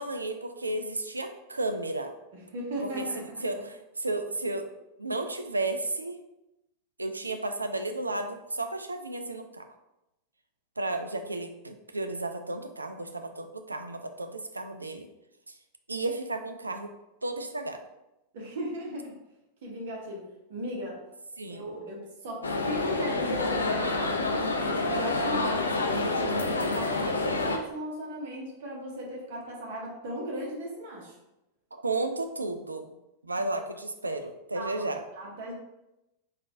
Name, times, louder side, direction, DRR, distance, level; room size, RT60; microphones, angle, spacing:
voice 1, 0.0-2.1 2.8-4.7 5.0-6.2 7.0-9.6 10.8-15.1 15.9-16.9 17.2-17.8 21.4-21.6 31.7-32.9 33.2-35.0, right 2 dB, 80° right, 7 dB, 0.3 m, -33 dB
voice 2, 2.5-3.4 18.3-19.1 19.6-20.2 20.5-21.0 21.5-31.1 34.5-35.5, equal, 55° right, -2 dB, 1.0 m, -37 dB
sound 1, 22.4-27.6, left 3 dB, 75° left, 0.4 m, -28 dB
3.7 x 2.4 x 3.4 m, 0.93 s
figure-of-eight pair, 90°, 0 cm